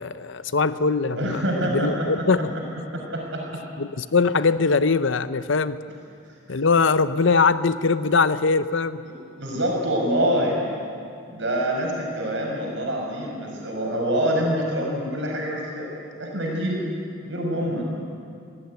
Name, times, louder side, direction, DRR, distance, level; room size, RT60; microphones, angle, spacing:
voice 1, 0.0-1.4 1.7-2.5 3.8-5.8 6.5-9.0, left 4 dB, 65° left, 14 dB, 0.7 m, -21 dB
voice 2, 1.2-2.6 2.9-3.6 6.3-6.6 9.0-10.6 11.3-15.9 16.2-16.8 17.2-17.9, equal, 65° right, 0 dB, 5.7 m, -26 dB
22.5 x 16.0 x 9.5 m, 2.5 s
head